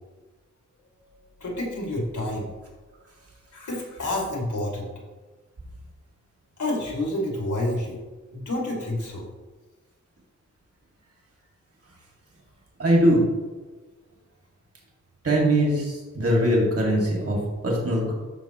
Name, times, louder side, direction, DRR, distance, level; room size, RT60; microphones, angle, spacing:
voice 1, 1.4-2.5 3.5-4.9 6.6-8.0 8.3-9.3, left 1 dB, 75° left, -2 dB, 2.4 m, -29 dB
voice 2, 12.8-13.2 15.2-18.1, right 1 dB, 50° right, -2 dB, 2.1 m, -21 dB
13.0 x 5.6 x 3.0 m, 1.2 s
wide cardioid pair, 130°, 30 cm